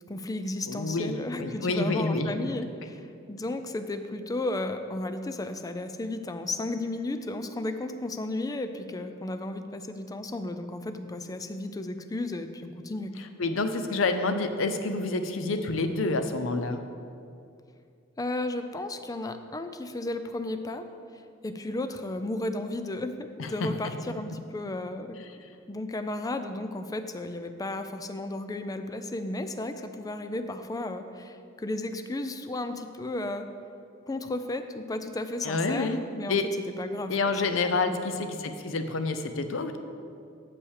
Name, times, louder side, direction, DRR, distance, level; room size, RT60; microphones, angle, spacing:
voice 1, 0.1-13.1 18.2-20.9 21.4-25.2 25.7-33.5 34.1-36.4 36.6-37.9, left 2 dB, 20° left, 9 dB, 0.4 m, -34 dB
voice 2, 0.7-2.3 13.4-16.8 23.6-23.7 35.4-36.0 36.3-36.5 37.1-39.8, left 3 dB, 75° left, 8 dB, 0.6 m, -28 dB
7.0 x 5.6 x 6.4 m, 2.4 s
head